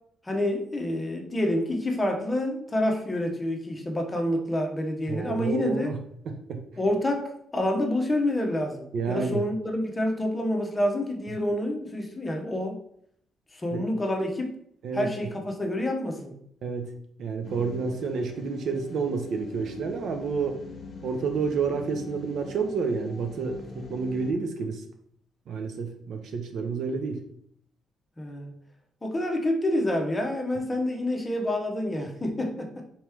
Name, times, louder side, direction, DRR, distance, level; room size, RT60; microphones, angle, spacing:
voice 1, 0.2-5.9 6.8-12.8 13.5-14.6 14.9-16.3 28.2-28.5 29.0-32.9, left 1 dB, 20° left, 2 dB, 0.9 m, -28 dB
voice 2, 5.1-6.0 6.3-6.6 8.9-9.4 13.7-13.8 14.8-15.1 16.6-16.9 17.2-20.6 21.0-24.8 25.5-27.2, right 5 dB, 70° right, 5 dB, 0.6 m, -29 dB
sound 1, 17.4-24.3, left 3 dB, 50° left, 0.8 m, -44 dB
4.4 x 3.0 x 3.5 m, 0.67 s
cardioid pair, 90°, 0 cm